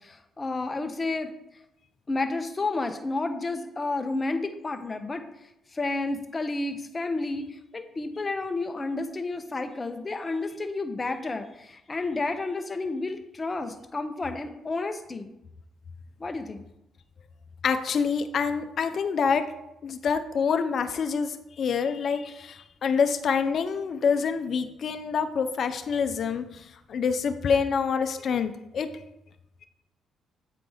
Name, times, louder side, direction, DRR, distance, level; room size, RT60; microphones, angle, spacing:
voice 1, 0.0-1.3 2.1-5.3 5.7-15.3 16.2-16.6, left 3 dB, 25° left, 7 dB, 0.8 m, -31 dB
voice 2, 17.6-19.5 19.8-28.9, left 6 dB, 55° left, 9 dB, 0.6 m, -26 dB
8.3 x 4.6 x 3.9 m, 0.87 s
cardioid pair, 90°, 0 cm